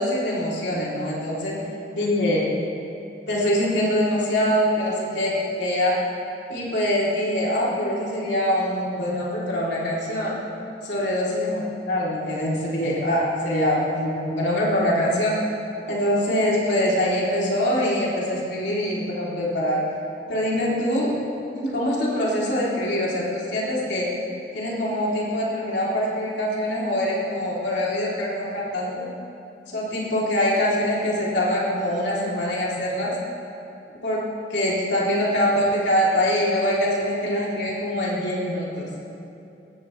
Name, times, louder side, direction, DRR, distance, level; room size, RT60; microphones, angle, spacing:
voice 1, 0.0-1.6 1.9-2.5 3.3-6.0 6.5-10.3 10.9-15.3 15.9-19.8 20.3-21.2 21.6-24.1 24.5-29.1 29.7-33.1 34.0-34.2 34.5-38.9, equal, 80° left, -6 dB, 3.4 m, -24 dB
19.0 x 17.0 x 3.4 m, 2.7 s
head